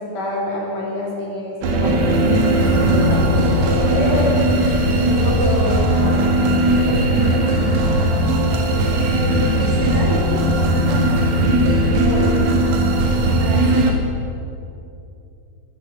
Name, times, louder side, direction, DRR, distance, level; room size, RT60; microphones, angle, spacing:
voice 1, 0.0-4.4 5.0-6.3 6.6-8.1 11.9-12.6, left 1 dB, 75° left, -3 dB, 4.7 m, -27 dB
sound 1, 1.6-13.9, right 1 dB, 65° right, 2.8 m, -17 dB
voice 2, 8.9-11.2 13.1-13.9, equal, 85° right, -3 dB, 4.7 m, -29 dB
14.0 x 13.0 x 7.6 m, 2.7 s
omnidirectional pair, 3.7 m